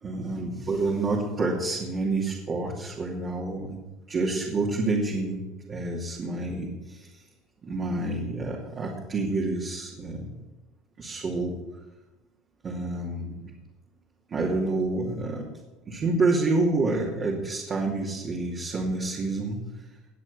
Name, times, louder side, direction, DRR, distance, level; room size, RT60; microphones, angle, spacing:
voice 1, 0.0-3.8 4.1-7.2 7.6-10.4 11.0-11.6 12.6-13.4 14.3-15.5 15.9-19.7, right 3 dB, 35° right, -3 dB, 2.6 m, -28 dB
19.5 x 6.5 x 6.7 m, 1.1 s
supercardioid pair, 105°, 0 cm